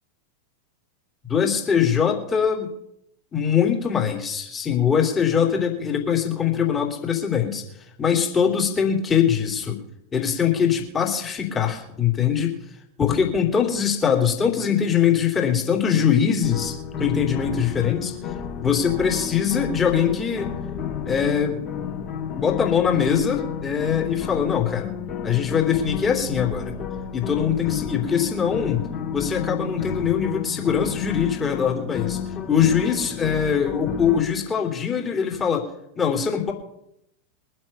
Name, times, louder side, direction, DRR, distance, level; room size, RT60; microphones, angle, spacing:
voice 1, 1.3-2.7 3.3-7.6 8.0-9.8 10.1-12.6 13.0-18.1 18.6-20.5 21.0-21.6 22.3-24.9 25.2-26.7 27.1-28.9 29.1-32.2 32.5-35.7 35.9-36.5, left 7 dB, 20° left, 1 dB, 3.1 m, -22 dB
sound 1, 16.4-34.2, left 7 dB, 35° left, 2.9 m, -31 dB
22.5 x 7.7 x 5.5 m, 0.79 s
figure-of-eight pair, 90°, 0 cm